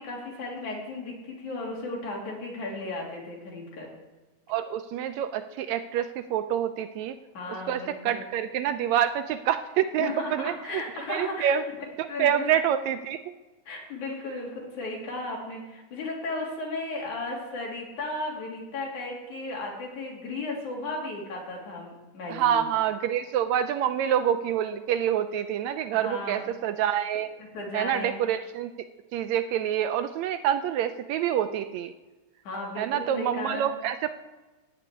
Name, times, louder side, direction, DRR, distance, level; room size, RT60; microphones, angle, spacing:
voice 1, 0.0-3.9 7.3-8.3 10.0-11.6 12.1-12.5 13.7-22.7 25.9-26.5 27.5-28.2 32.4-33.7, left 2 dB, 75° left, -2 dB, 4.3 m, -35 dB
voice 2, 4.5-7.2 7.7-10.8 11.1-11.6 12.2-13.2 22.3-27.3 27.7-28.7 29.1-31.9 32.8-34.2, right 10 dB, 80° right, 10 dB, 1.7 m, -27 dB
15.5 x 5.2 x 9.6 m, 1.2 s
omnidirectional pair, 3.5 m